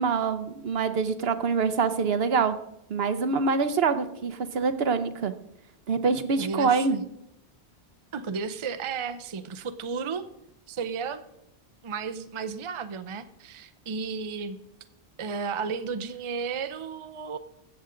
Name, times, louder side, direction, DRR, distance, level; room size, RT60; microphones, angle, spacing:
voice 1, 0.0-2.6 2.9-5.3 5.9-7.0, right 5 dB, 65° right, 11 dB, 1.0 m, -25 dB
voice 2, 6.4-7.0 8.1-10.3 10.7-11.2 11.8-14.6 15.2-17.4, right 5 dB, 35° right, 10 dB, 0.5 m, -33 dB
16.0 x 7.0 x 3.8 m, 0.81 s
omnidirectional pair, 1.1 m